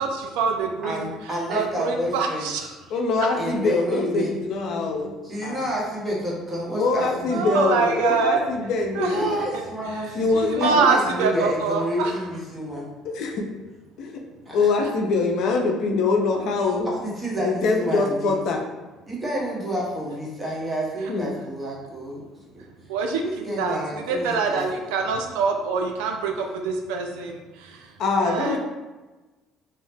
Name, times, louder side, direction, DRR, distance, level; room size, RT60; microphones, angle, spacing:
voice 1, 0.0-1.1 1.5-2.7 7.3-8.5 9.0-9.4 10.4-12.1 22.9-23.2 23.5-23.8 24.1-27.4 27.7-27.8 28.2-28.6, right 5 dB, 85° right, 3 dB, 0.3 m, -24 dB
voice 2, 0.8-2.5 3.4-4.3 4.7-4.8 5.2-7.4 8.5-10.3 10.6-12.8 14.5-14.7 16.8-18.4 19.1-22.6 23.2-24.8, equal, 15° right, -4 dB, 1.0 m, -29 dB
voice 3, 2.9-5.1 5.4-5.6 6.8-9.3 10.2-10.8 13.0-13.4 14.0-14.1 14.5-16.9 17.4-18.6 21.1-21.3 28.0-28.6, left 4 dB, 70° left, 2 dB, 0.5 m, -24 dB
2.7 x 2.0 x 3.3 m, 1.2 s
supercardioid pair, 80°, 0 cm